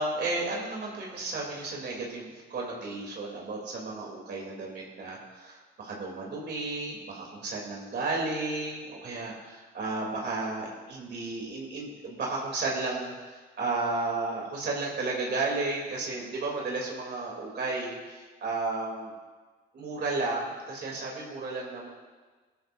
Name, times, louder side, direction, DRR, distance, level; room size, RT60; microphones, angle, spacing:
voice 1, 0.0-19.1 19.7-21.9, right 3 dB, 55° right, -2 dB, 3.3 m, -33 dB
18.0 x 13.0 x 2.7 m, 1.4 s
cardioid pair, 90°, 20 cm